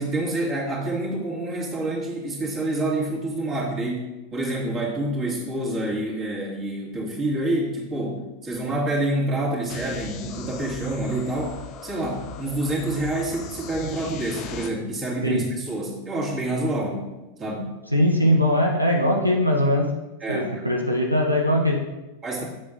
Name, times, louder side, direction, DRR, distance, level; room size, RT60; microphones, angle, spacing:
voice 1, 0.0-11.6 11.8-17.1 17.4-17.7 20.2-20.6 22.2-22.4, right 1 dB, 25° right, -3 dB, 2.1 m, -27 dB
sound 1, 9.7-14.7, left 5 dB, 35° left, 0.6 m, -39 dB
voice 2, 17.9-19.9 20.3-21.8, equal, 90° right, 0 dB, 0.8 m, -21 dB
8.6 x 7.3 x 2.5 m, 1.1 s
figure-of-eight pair, 90°, 0 cm